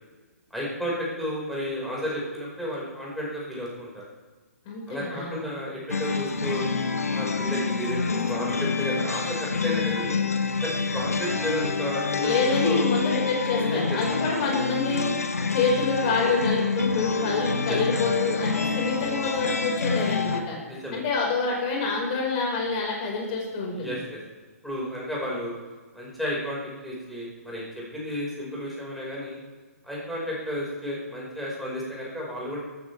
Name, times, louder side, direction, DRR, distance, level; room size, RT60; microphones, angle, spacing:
voice 1, 0.5-4.0 4.9-6.6 7.1-10.2 10.6-12.9 13.6-14.0 16.2-16.3 17.7-17.8 20.7-21.0 23.8-24.2 24.6-25.5 25.9-27.6 27.9-29.4 29.8-32.6, equal, ahead, -6 dB, 5.2 m, -32 dB
voice 2, 4.7-5.4 12.2-15.1 15.5-20.6 20.9-24.0, left 4 dB, 30° left, -1 dB, 5.2 m, -27 dB
sound 1, 5.9-20.4, left 4 dB, 70° left, 1.2 m, -27 dB
19.5 x 15.5 x 3.5 m, 1.4 s
figure-of-eight pair, 125°, 8 cm